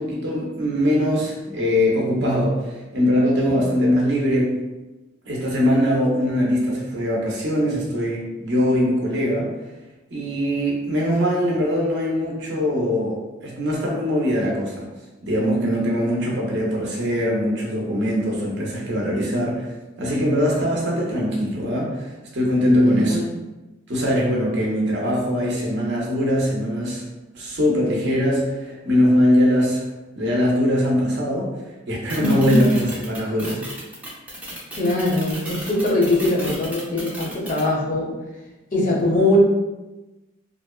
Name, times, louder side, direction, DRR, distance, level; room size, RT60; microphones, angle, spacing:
voice 1, 0.0-4.6 5.3-9.5 10.1-14.9 15.2-19.7 20.0-23.2 23.9-27.0 27.3-29.8 30.2-31.5 31.9-33.6, equal, 60° right, -3 dB, 0.6 m, -21 dB
voice 2, 22.8-23.3 32.2-32.7 34.7-38.1 38.7-39.4, left 2 dB, 40° left, -3 dB, 0.6 m, -21 dB
sound 1, 32.1-37.6, right 1 dB, 5° right, 0.5 m, -34 dB
2.6 x 2.1 x 2.2 m, 1.1 s
head